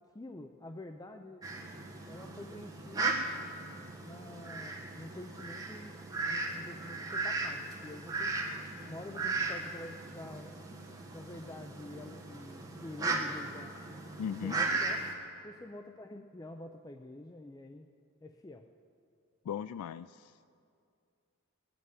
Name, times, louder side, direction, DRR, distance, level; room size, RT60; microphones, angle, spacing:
voice 1, 0.0-1.5 2.1-3.2 4.0-8.3 8.9-10.6 11.1-13.8 14.4-15.1 15.4-17.9 18.2-18.7, left 1 dB, 15° left, 6 dB, 0.4 m, -47 dB
Fowl, 1.4-15.1, right 3 dB, 15° right, 1.4 m, -37 dB
voice 2, 14.2-14.6 19.4-20.4, left 8 dB, 90° left, 15 dB, 0.3 m, -38 dB
18.0 x 7.7 x 9.5 m, 2.4 s
head